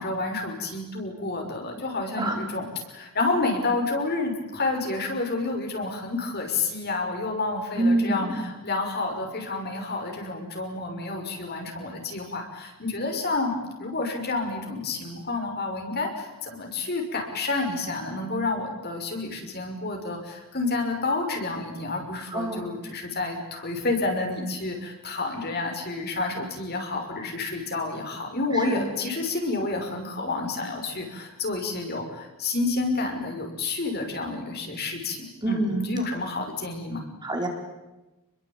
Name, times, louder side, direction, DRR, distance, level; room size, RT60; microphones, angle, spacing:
voice 1, 0.0-37.0, left 3 dB, 45° left, 3 dB, 6.0 m, -29 dB
voice 2, 7.8-8.4 22.3-22.7 28.7-28.9 35.4-35.9 37.2-37.5, right 1 dB, 20° right, 2 dB, 4.2 m, -26 dB
29.5 x 22.0 x 8.9 m, 1.0 s
head